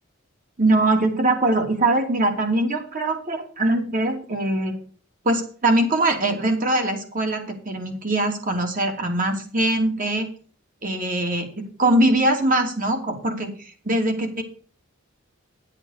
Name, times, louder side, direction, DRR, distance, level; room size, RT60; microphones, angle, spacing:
voice 1, 0.6-4.8 5.2-10.3 10.8-14.4, right 2 dB, 45° right, 4 dB, 3.0 m, -22 dB
11.0 x 8.1 x 6.7 m, 0.42 s
head